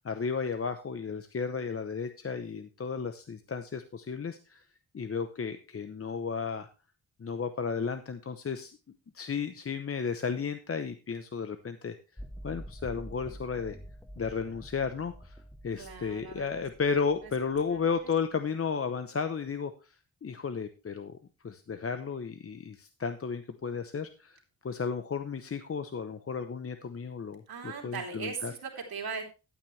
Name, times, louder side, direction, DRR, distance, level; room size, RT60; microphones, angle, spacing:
voice 1, 0.0-4.6 4.9-6.7 7.2-8.8 9.1-12.0 12.4-13.8 14.2-19.9 20.2-21.1 21.4-24.4 24.6-28.5, left 5 dB, 40° left, 9 dB, 0.8 m, -33 dB
sound 1, 12.2-18.2, equal, 5° left, 1.0 m, -47 dB
voice 2, 15.8-16.5 17.2-17.3 27.5-29.2, right 5 dB, 80° right, 0 dB, 3.3 m, -38 dB
12.5 x 9.0 x 3.2 m, 0.31 s
wide cardioid pair, 105°, 36 cm